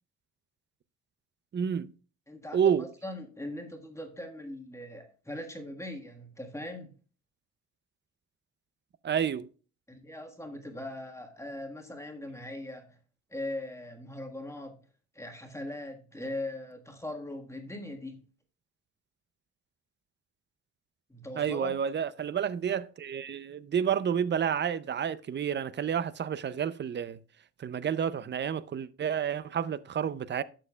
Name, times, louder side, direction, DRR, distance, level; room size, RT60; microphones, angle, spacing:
voice 1, 1.5-1.9 2.5-2.9 9.0-9.5 21.4-27.2 27.6-30.4, right 8 dB, 35° right, 0.5 m, -30 dB
voice 2, 2.3-6.9 9.9-13.0 13.3-14.8 15.1-18.2 21.1-21.7, left 1 dB, 10° left, 1.5 m, -40 dB
12.0 x 6.6 x 2.3 m
cardioid pair, 90°, 30 cm